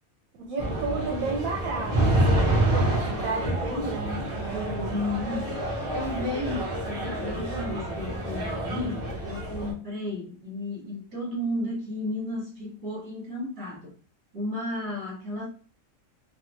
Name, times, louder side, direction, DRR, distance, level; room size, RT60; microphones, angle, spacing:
voice 1, 0.4-2.3 2.7-4.9, right 3 dB, 75° right, 1.2 m, -32 dB
sound 1, 0.6-9.7, right 1 dB, 25° right, 1.7 m, -28 dB
voice 2, 4.9-5.6 5.9-13.9 14.3-15.5, left 2 dB, 50° right, 2.2 m, -33 dB
4.2 x 2.2 x 3.1 m
omnidirectional pair, 1.4 m